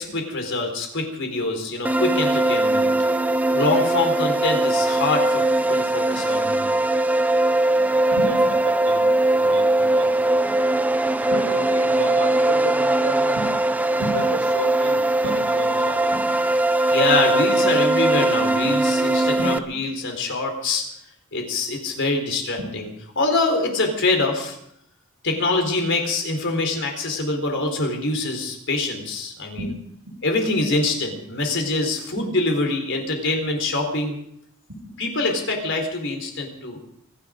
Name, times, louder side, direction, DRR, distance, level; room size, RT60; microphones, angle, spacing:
voice 1, 0.0-2.9 3.5-6.7 16.6-20.8 21.3-22.9 23.2-24.6 25.2-29.6 30.2-34.2 35.0-36.8, left 2 dB, 60° left, 4 dB, 4.1 m, -24 dB
sound 1, 1.8-19.6, right 2 dB, 5° right, 0.6 m, -20 dB
voice 2, 8.1-10.2 10.5-10.6 11.2-13.5 13.9-16.2 19.4-19.6 22.6-22.7 29.6-29.7 32.2-32.3 34.7-35.0, right 1 dB, 80° right, 1 dB, 4.5 m, -31 dB
24.5 x 11.0 x 5.1 m, 0.74 s
head